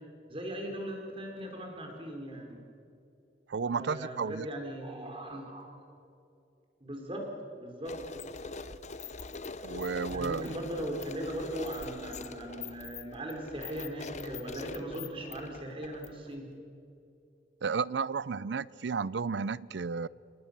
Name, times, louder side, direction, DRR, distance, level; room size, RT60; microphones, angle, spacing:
voice 1, 0.3-2.6 3.7-5.7 6.8-7.3 7.6-8.0 10.1-16.5, right 1 dB, 30° right, 2 dB, 4.2 m, -39 dB
voice 2, 3.5-4.5 9.6-10.5 17.6-20.1, right 5 dB, 70° right, 21 dB, 0.5 m, -32 dB
sound 1, 7.8-16.4, left 3 dB, 40° left, 0.9 m, -43 dB
27.5 x 19.5 x 6.7 m, 2.6 s
head